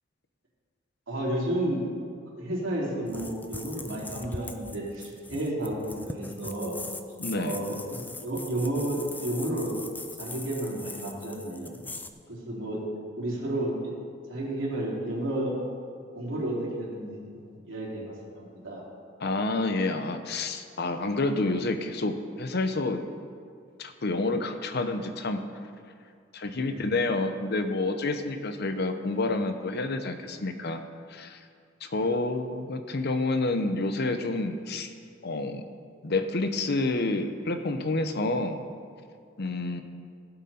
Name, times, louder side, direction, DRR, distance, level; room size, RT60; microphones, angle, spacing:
voice 1, 1.1-1.8 2.3-6.7 7.3-9.7 10.2-11.8 12.3-12.8 13.2-13.9 14.3-15.5 16.1-18.8 26.6-26.8 31.9-32.0, right 1 dB, 90° right, -5 dB, 3.5 m, -32 dB
sound 1, 3.1-12.1, left 2 dB, 10° left, 0.5 m, -41 dB
voice 2, 7.2-7.6 19.2-23.0 23.8-25.4 26.3-30.8 31.1-31.4 31.8-34.9 35.2-35.6 36.0-38.7 39.4-39.8, left 2 dB, 55° left, 8 dB, 0.8 m, -29 dB
16.0 x 8.0 x 4.3 m, 2.3 s
head